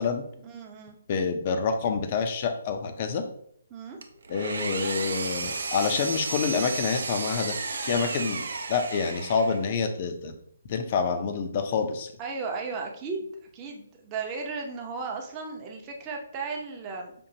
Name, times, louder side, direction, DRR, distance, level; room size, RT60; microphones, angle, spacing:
voice 1, 0.4-1.0 3.7-4.0 12.2-13.3 13.5-17.1, right 4 dB, 25° right, 1 dB, 0.7 m, -35 dB
voice 2, 1.1-3.2 4.3-7.6 7.8-8.4 8.7-10.3 10.7-12.1, left 5 dB, 40° left, 7 dB, 0.6 m, -27 dB
Engine, 4.0-9.7, right 4 dB, 70° right, 0.5 m, -33 dB
5.2 x 2.5 x 2.8 m, 0.64 s
hypercardioid pair, 155°, 0 cm